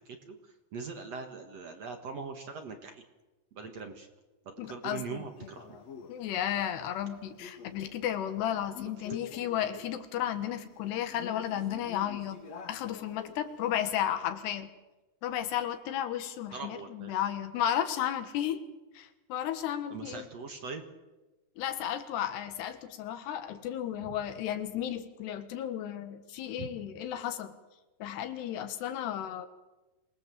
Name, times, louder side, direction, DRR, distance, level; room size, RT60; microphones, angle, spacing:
voice 1, 0.1-3.0 3.5-4.1 4.5-5.8 16.5-17.1 19.9-20.8 24.0-24.2 26.6-26.7, right 5 dB, 50° right, 5 dB, 2.2 m, -41 dB
voice 2, 4.6-5.3 6.1-12.4 12.7-14.7 15.2-18.6 19.0-20.3 21.6-27.6 28.0-29.5, left 10 dB, 85° left, 9 dB, 3.6 m, -33 dB
Male speech man speaking, 5.4-13.9, left 6 dB, 50° left, 2.5 m, -49 dB
26.0 x 19.5 x 7.7 m, 1.1 s
omnidirectional pair, 4.7 m